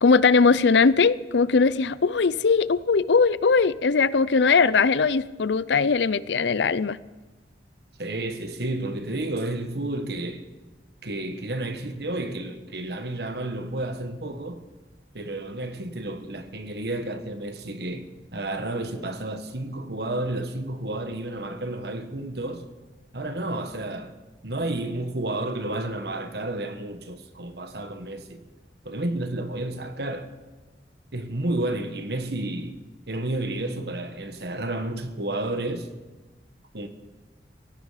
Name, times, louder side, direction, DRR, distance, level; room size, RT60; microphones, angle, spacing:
voice 1, 0.0-7.0, left 4 dB, 80° left, 0.6 m, -20 dB
voice 2, 8.0-10.4 11.0-14.6 15.1-22.6 23.1-24.1 24.4-28.4 28.8-30.3 31.1-32.8 33.1-35.9 36.7-36.9, right 1 dB, 65° right, 1.4 m, -31 dB
17.5 x 16.5 x 5.0 m
head